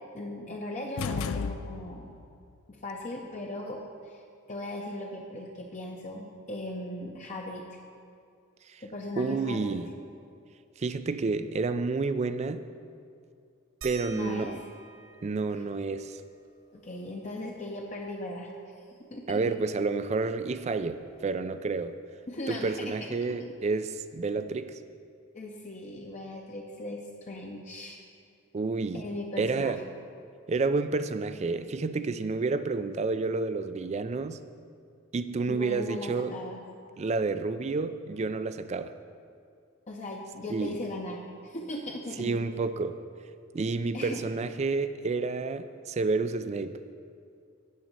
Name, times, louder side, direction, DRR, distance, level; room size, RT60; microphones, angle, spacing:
voice 1, 0.1-2.1 2.7-4.2 4.5-7.6 8.8-9.8 14.1-14.6 16.7-18.5 19.1-19.4 22.3-22.7 25.3-28.0 28.9-29.7 35.5-36.6 39.9-42.4 43.9-44.3, left 1 dB, 35° left, -1 dB, 0.7 m, -38 dB
sound 1, 1.0-2.2, left 5 dB, 70° left, 0.4 m, -33 dB
voice 2, 9.2-9.9 10.8-12.6 13.8-14.6 15.2-16.2 19.3-22.0 22.5-24.7 28.5-29.1 29.4-29.8 30.5-34.4 35.1-36.3 37.0-38.9 40.5-40.7 42.2-43.0 43.5-46.8, right 3 dB, 30° right, 11 dB, 0.3 m, -30 dB
sound 2, 13.8-18.9 19.3-19.4 19.7-21.5 22.7-22.8 23.6-23.7, right 5 dB, 70° right, 0.9 m, -51 dB
12.0 x 4.1 x 8.1 m, 2.3 s
head